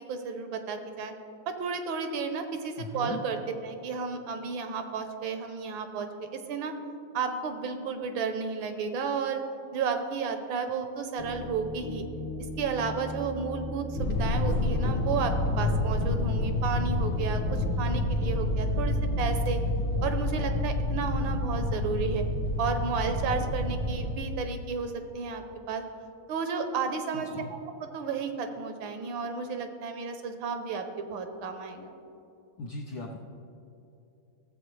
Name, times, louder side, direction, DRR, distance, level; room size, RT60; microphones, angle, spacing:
voice 1, 0.1-1.1 1.5-3.4 3.6-6.7 7.1-9.4 9.7-12.0 12.6-19.6 20.0-22.2 22.6-25.8 26.3-27.3 27.9-31.9, right 5 dB, 75° right, 6 dB, 1.4 m, -32 dB
voice 2, 2.8-3.2 27.1-27.5 32.6-33.2, left 2 dB, 75° left, 0 dB, 0.8 m, -38 dB
sound 1, 11.2-15.6, left 1 dB, 40° left, 0.4 m, -39 dB
sound 2, 13.9-24.1, left 1 dB, 60° left, 1.7 m, -28 dB
15.0 x 7.4 x 3.1 m, 2.7 s
omnidirectional pair, 2.3 m